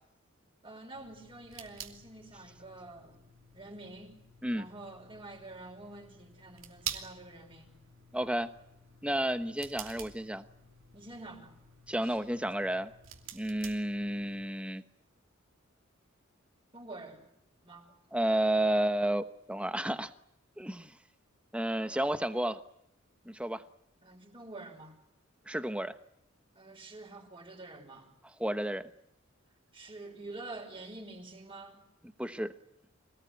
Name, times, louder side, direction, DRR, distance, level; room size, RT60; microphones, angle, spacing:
voice 1, 0.6-3.2 3.5-4.2 4.5-7.7 10.9-11.5 12.0-12.2 16.7-17.2 17.6-17.9 24.0-25.0 26.5-28.1 29.7-31.8, right 2 dB, 25° right, 5.5 m, -47 dB
sound 1, 0.9-14.5, right 8 dB, 70° right, 2.9 m, -48 dB
voice 2, 8.1-8.5 9.0-10.4 11.9-12.9 13.3-14.8 18.1-20.1 20.6-21.0 21.5-22.6 23.2-23.6 25.5-25.9 28.4-28.9 32.2-32.5, right 1 dB, 5° right, 1.1 m, -31 dB
25.5 x 18.5 x 9.4 m
head